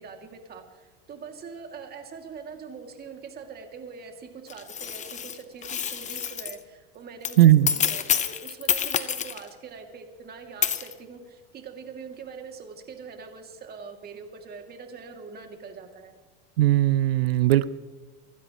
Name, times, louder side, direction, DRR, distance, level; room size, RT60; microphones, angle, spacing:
voice 1, 0.0-16.1, right 5 dB, 30° right, 4 dB, 2.5 m, -43 dB
sound 1, 4.5-6.6 7.2-9.5 10.6-10.9, left 8 dB, 25° left, 0.9 m, -28 dB
voice 2, 7.4-7.7 16.6-17.7, right 13 dB, 85° right, 16 dB, 0.7 m, -18 dB
25.5 x 12.5 x 3.1 m, 1.4 s
supercardioid pair, 110°, 29 cm